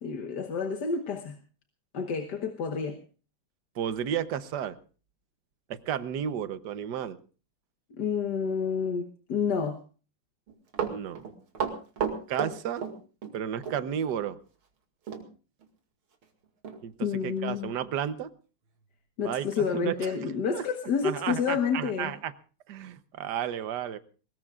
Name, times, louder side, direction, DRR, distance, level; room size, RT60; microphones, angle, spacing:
voice 1, 0.0-1.4 1.9-3.0 8.0-9.8 17.0-17.7 19.2-22.1, left 6 dB, 55° left, 5 dB, 1.7 m, -29 dB
voice 2, 3.7-4.8 5.7-7.2 10.8-11.3 12.3-12.8 13.3-14.4 16.8-16.9 17.2-18.3 19.2-20.2 20.5-20.6 21.0-22.3 22.7-24.0, right 9 dB, 60° right, 12 dB, 1.5 m, -32 dB
Run, 10.5-13.4 13.6-13.8 15.1-15.3 15.6-15.7 16.2-16.3 16.6-16.8 17.4-17.5, right 7 dB, 85° right, 3.0 m, -32 dB
23.0 x 20.5 x 2.5 m, 0.37 s
omnidirectional pair, 2.3 m